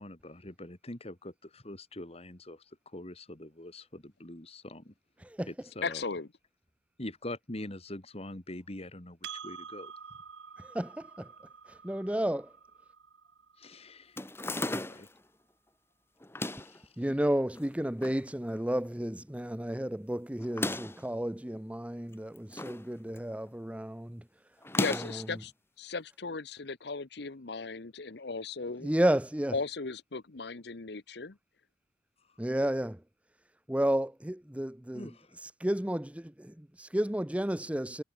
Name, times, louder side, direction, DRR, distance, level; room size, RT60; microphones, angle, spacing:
voice 1, 0.0-4.9 5.5-6.0 7.0-10.0 13.6-14.3 14.9-15.1 16.4-17.0 32.2-32.5 34.9-35.4, left 1 dB, 35° left, 2.6 m, -44 dB
voice 2, 5.8-6.3 24.8-25.5 25.8-28.9 29.5-31.4, left 4 dB, 65° left, 1.0 m, -36 dB
Percussion, 9.2-14.0, right 6 dB, 80° right, 1.5 m, -48 dB
voice 3, 10.6-11.3 11.7-12.5 17.0-24.2 25.1-25.3 28.8-29.5 32.4-33.0 33.7-35.1 35.4-38.0, right 1 dB, 5° right, 0.7 m, -32 dB
sound 1, 14.2-15.2 16.2-16.8 17.6-18.2 18.6-18.7 18.8-18.9 20.4-21.1 22.1-22.8 23.2-23.5 24.6-25.3, left 2 dB, 15° left, 1.6 m, -35 dB
head